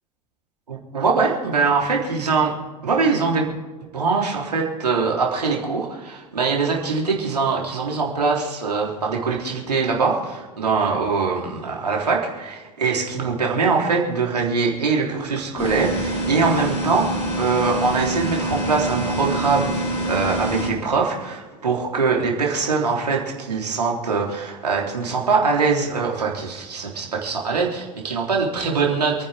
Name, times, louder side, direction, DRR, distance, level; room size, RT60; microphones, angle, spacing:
voice 1, 0.7-2.5 2.8-3.5 3.9-29.3, right 4 dB, 80° right, -1 dB, 3.5 m, -22 dB
sound 1, 15.6-20.7, right 1 dB, 30° left, 5.8 m, -25 dB
28.5 x 10.0 x 3.5 m, 1.3 s
figure-of-eight pair, 85°, 20 cm